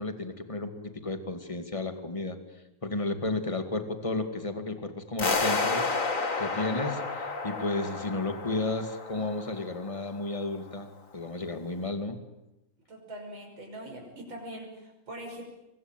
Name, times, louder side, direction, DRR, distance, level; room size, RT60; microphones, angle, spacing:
voice 1, 0.0-2.4 2.8-12.2, left 2 dB, 15° left, 7 dB, 2.2 m, -33 dB
sound 1, 5.2-10.1, left 3 dB, 40° left, 2.5 m, -31 dB
voice 2, 12.9-15.4, right 1 dB, 65° right, 1 dB, 6.7 m, -42 dB
25.0 x 22.5 x 9.1 m, 0.95 s
omnidirectional pair, 2.3 m